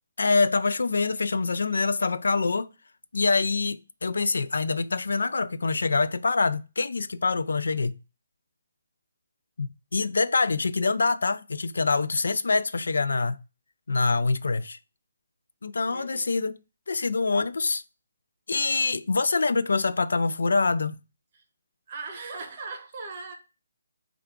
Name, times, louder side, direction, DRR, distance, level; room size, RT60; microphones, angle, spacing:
voice 1, 0.2-2.7 3.1-7.9 9.6-13.4 13.9-14.8 15.6-16.6 16.9-17.8 18.5-21.0, left 3 dB, 85° left, 0.3 m, -25 dB
voice 2, 15.9-16.3 21.9-23.3, right 4 dB, 30° right, 0.9 m, -38 dB
4.4 x 2.4 x 3.6 m
hypercardioid pair, 170°, 0 cm